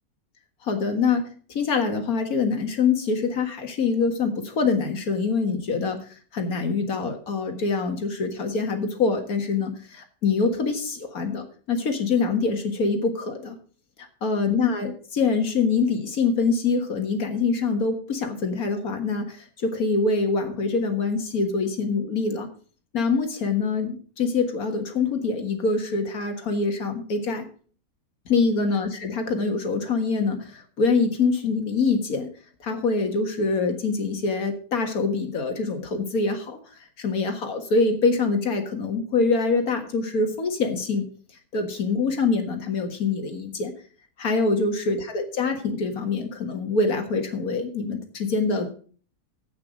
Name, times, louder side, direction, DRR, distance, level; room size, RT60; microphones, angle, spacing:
voice 1, 0.6-6.0 6.3-13.6 14.0-22.5 22.9-27.5 28.3-32.3 32.6-36.6 37.0-41.1 41.5-43.7 44.2-48.7, left 4 dB, 75° left, 5 dB, 2.1 m, -25 dB
10.5 x 8.4 x 5.0 m, 0.43 s
omnidirectional pair, 1.5 m